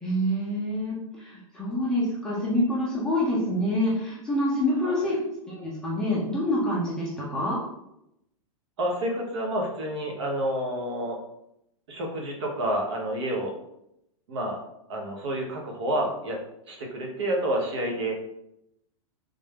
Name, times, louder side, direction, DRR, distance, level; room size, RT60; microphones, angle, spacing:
voice 1, 0.0-7.6, left 1 dB, 5° left, -7 dB, 0.5 m, -27 dB
voice 2, 8.8-11.2 11.9-13.5 14.3-14.6 14.9-16.4 16.7-18.2, right 1 dB, 50° right, 1 dB, 1.0 m, -29 dB
3.3 x 2.6 x 3.5 m, 0.80 s
supercardioid pair, 165°, 18 cm